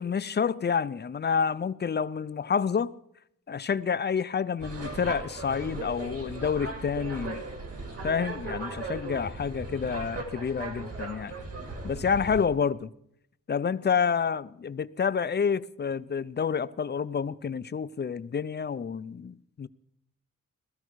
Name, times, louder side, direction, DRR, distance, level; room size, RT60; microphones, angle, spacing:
voice 1, 0.0-2.9 3.5-7.4 8.0-11.3 11.8-12.9 13.5-19.7, left 6 dB, 35° left, 0.4 m, -28 dB
sound 1, 4.6-12.5, right 3 dB, 50° right, 2.7 m, -37 dB
17.5 x 13.5 x 4.6 m
wide cardioid pair, 125°, 31 cm